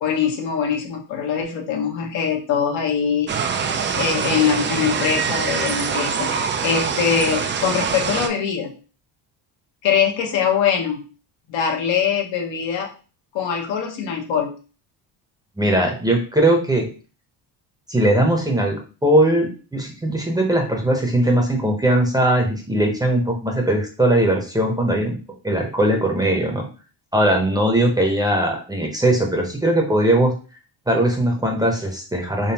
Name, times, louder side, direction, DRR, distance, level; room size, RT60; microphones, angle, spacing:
voice 1, 0.0-3.6 4.0-8.7 9.8-11.0 11.5-12.9 13.3-14.5, left 7 dB, 75° left, 1 dB, 1.2 m, -22 dB
sound 1, 3.3-8.3, right 6 dB, 25° right, 0.3 m, -24 dB
voice 2, 15.6-16.9 17.9-25.2 25.4-26.7 27.1-30.3 30.9-32.5, right 1 dB, 10° right, 2 dB, 0.8 m, -19 dB
3.9 x 3.2 x 2.8 m, 0.35 s
cardioid pair, 110°, 46 cm